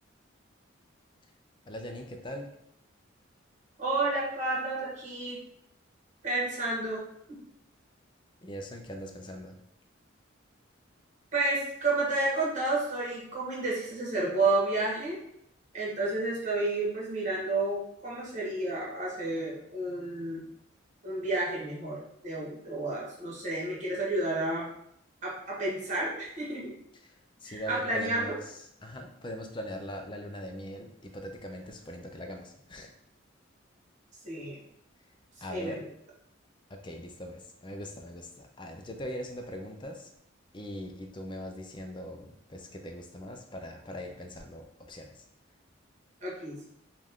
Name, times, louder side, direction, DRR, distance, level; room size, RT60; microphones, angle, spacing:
voice 1, 1.7-2.5 8.4-9.6 26.9-32.9 35.4-35.9 36.7-40.1 40.5-45.2, equal, 25° left, 4 dB, 0.5 m, -41 dB
voice 2, 3.8-5.4 6.2-7.4 11.3-15.2 15.7-20.4 21.0-24.7 25.2-26.7 27.5-28.3 34.2-34.6 35.5-35.8 46.2-46.5, right 2 dB, 40° right, -5 dB, 1.5 m, -31 dB
5.2 x 2.5 x 3.6 m, 0.75 s
head